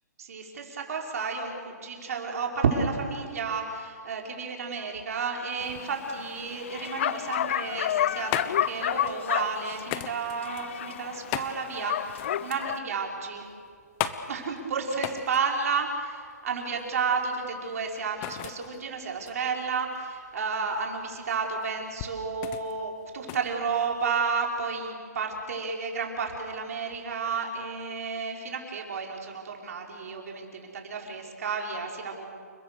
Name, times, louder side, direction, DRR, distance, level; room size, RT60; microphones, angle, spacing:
voice 1, 0.2-13.5 14.3-32.3, right 5 dB, 60° right, 1 dB, 5.1 m, -31 dB
Bark, 5.6-12.8, left 11 dB, 45° left, 0.6 m, -31 dB
sound 1, 7.8-24.4, left 11 dB, 25° left, 1.2 m, -39 dB
29.5 x 21.5 x 6.8 m, 2.2 s
hypercardioid pair, 155°, 9 cm